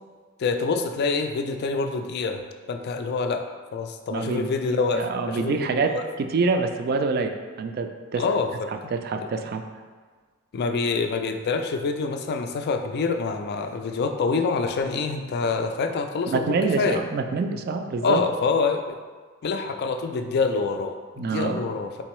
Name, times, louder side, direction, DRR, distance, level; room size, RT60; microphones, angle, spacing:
voice 1, 0.4-2.4 2.7-6.0 8.2-8.9 10.5-17.0 18.0-19.0 19.4-22.0, left 4 dB, 50° left, 7 dB, 0.3 m, -26 dB
voice 2, 4.1-7.3 7.6-8.2 8.9-9.6 16.3-18.2 21.2-21.7, right 4 dB, 45° right, 6 dB, 0.3 m, -26 dB
4.3 x 3.7 x 3.1 m, 1.5 s
head